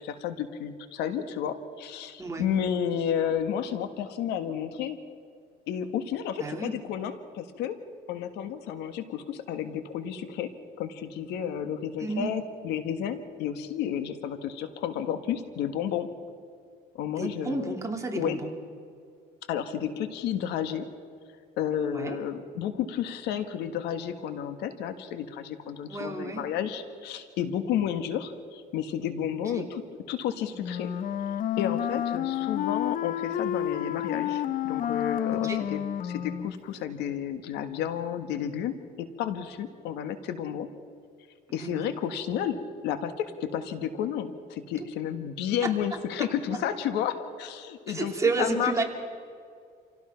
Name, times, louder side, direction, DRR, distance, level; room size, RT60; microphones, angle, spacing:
voice 1, 0.0-5.0 5.7-7.8 8.1-10.5 10.8-16.1 16.9-17.8 18.1-18.4 19.5-20.9 21.6-29.8 30.1-30.9 31.6-40.7 41.5-48.1 48.4-48.8, left 9 dB, 85° left, 10 dB, 1.6 m, -31 dB
voice 2, 6.4-6.8 12.0-12.4 17.2-18.5 21.8-22.2 25.9-26.4 29.6-29.7 35.3-35.6 41.5-41.9 45.6-45.7 47.9-48.8, right 3 dB, 20° right, 2 dB, 2.9 m, -31 dB
Wind instrument woodwind instrument, 30.6-36.6, left 11 dB, 55° left, 0.8 m, -30 dB
27.5 x 17.0 x 5.8 m, 2.2 s
cardioid pair, 110°, 17 cm